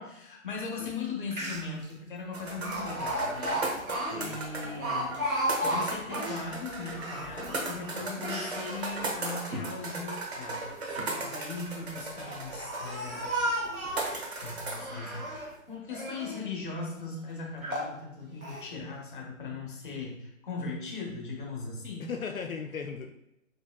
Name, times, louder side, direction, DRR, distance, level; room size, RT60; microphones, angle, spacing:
voice 1, 0.0-3.8 4.1-5.2 5.6-13.3 14.4-22.1, left 4 dB, 40° left, -1 dB, 0.9 m, -39 dB
Speech, 1.0-1.1 1.3-1.9 2.6-6.5 6.9-8.6 9.1-10.0 10.9-11.4 12.1-14.2 14.7-15.5 15.9-16.4 17.0-17.1 17.6-17.9 18.4-18.7, right 1 dB, 85° right, 1.0 m, -34 dB
sound 1, 2.3-15.6, right 2 dB, 50° right, 1.0 m, -37 dB
voice 2, 4.0-4.8 22.0-23.1, left 6 dB, 80° left, 5 dB, 0.5 m, -38 dB
4.8 x 2.9 x 2.3 m, 0.85 s
figure-of-eight pair, 140°, 41 cm